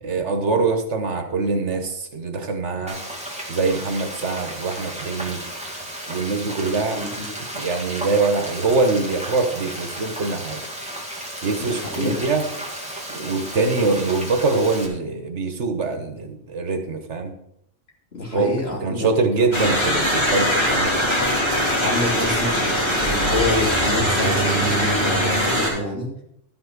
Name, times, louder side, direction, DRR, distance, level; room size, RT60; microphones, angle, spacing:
voice 1, 0.0-3.0 3.5-5.4 6.1-7.0 7.5-10.7 11.4-12.5 13.1-17.3 18.3-18.5 18.8-20.9, right 3 dB, 75° right, 6 dB, 1.6 m, -23 dB
Frying (food), 2.9-14.9, right 1 dB, 5° right, 2.0 m, -34 dB
voice 2, 6.9-7.3 11.6-12.3 18.1-19.1 19.4-19.5 21.8-26.1, left 2 dB, 60° left, -3 dB, 3.3 m, -27 dB
sound 1, 19.5-25.7, equal, 25° left, 3.1 m, -21 dB
13.0 x 6.1 x 6.1 m, 0.76 s
omnidirectional pair, 1.2 m